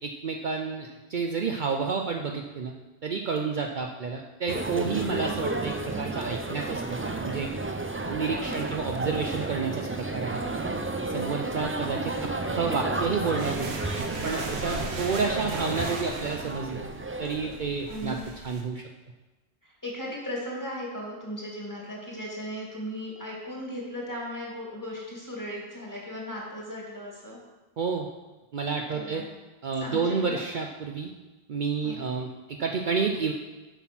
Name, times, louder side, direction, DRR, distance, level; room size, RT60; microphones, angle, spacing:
voice 1, 0.0-2.7 3.0-7.5 8.0-10.4 11.1-13.7 14.2-16.9 17.2-18.2 18.4-18.8 27.8-28.1 28.5-29.2 29.6-31.1 31.5-32.3 32.6-33.3, right 5 dB, 55° right, 2 dB, 0.7 m, -30 dB
sound 1, 4.5-18.0, right 2 dB, 20° right, 0.3 m, -32 dB
voice 2, 8.4-8.9 17.9-18.3 19.6-27.4 28.9-29.2 29.8-30.5 31.8-32.0, equal, 15° left, -3 dB, 2.2 m, -37 dB
sound 2, 13.3-18.6, right 3 dB, 90° right, 1.3 m, -38 dB
8.1 x 6.0 x 6.0 m, 1.2 s
omnidirectional pair, 1.1 m